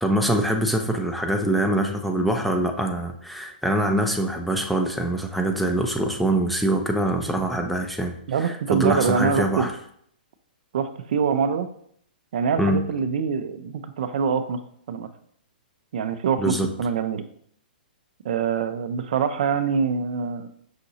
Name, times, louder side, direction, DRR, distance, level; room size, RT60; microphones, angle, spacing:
voice 1, 0.0-8.1 8.4-9.7 12.6-12.8 16.4-16.7, right 1 dB, ahead, 3 dB, 0.4 m, -24 dB
voice 2, 8.3-9.7 10.7-11.7 12.3-14.6 14.9-15.1 15.9-17.2 18.2-20.5, right 6 dB, 65° right, 9 dB, 0.4 m, -24 dB
5.7 x 2.7 x 2.7 m, 0.64 s
hypercardioid pair, 125°, 5 cm